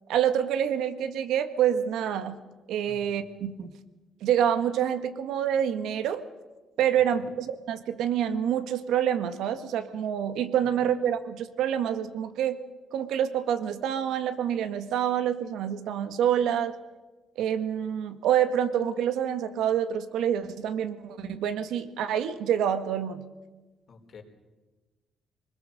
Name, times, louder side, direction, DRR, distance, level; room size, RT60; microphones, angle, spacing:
voice 1, 0.1-2.4 2.7-3.7 4.2-6.2 6.8-12.6 12.9-16.7 17.4-23.2, right 9 dB, 80° right, 10 dB, 1.7 m, -27 dB
voice 2, 2.8-3.2 6.9-7.3 23.9-24.2, left 5 dB, 60° left, 3 dB, 4.6 m, -49 dB
24.5 x 21.0 x 6.7 m, 1.2 s
supercardioid pair, 60°, 0 cm